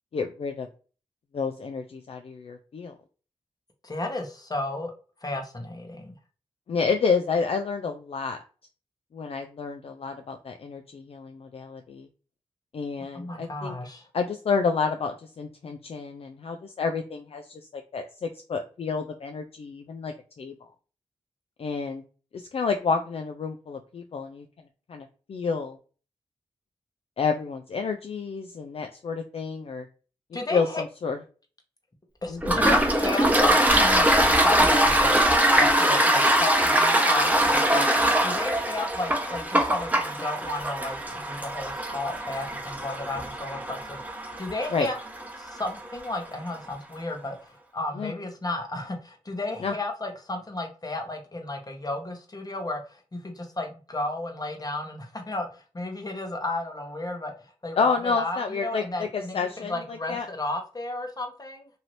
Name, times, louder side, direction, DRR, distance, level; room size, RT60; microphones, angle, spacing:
voice 1, 0.1-0.7 1.3-2.9 6.7-8.4 9.1-12.1 12.7-13.7 14.1-20.5 21.6-22.0 22.3-24.5 24.9-25.8 27.2-29.9 30.5-31.2 32.3-32.7 44.7-44.9 48.0-48.1 49.6-49.7 57.8-60.3, left 5 dB, 60° left, 5 dB, 0.4 m, -29 dB
voice 2, 3.8-4.9 5.2-6.1 13.1-14.1 30.3-30.8 32.2-35.2 35.6-44.0 44.4-45.0 45.4-57.3 57.6-61.7, left 2 dB, 35° left, 4 dB, 1.0 m, -33 dB
Toilet flush, 32.4-45.8, right 1 dB, 15° right, 0.8 m, -22 dB
2.7 x 2.7 x 3.0 m, 0.38 s
cardioid pair, 40°, 12 cm